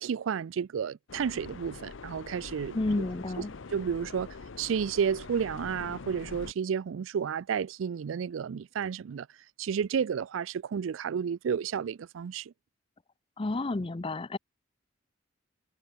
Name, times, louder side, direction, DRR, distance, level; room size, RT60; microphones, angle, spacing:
voice 1, 0.0-2.8 3.7-4.3 4.6-9.3 9.6-12.5, right 7 dB, 80° right, 0.4 m, -31 dB
sound 1, 1.1-6.5, left 4 dB, 75° left, 0.7 m, -44 dB
voice 2, 2.7-3.5 13.4-14.4, left 2 dB, 25° left, 0.5 m, -31 dB
head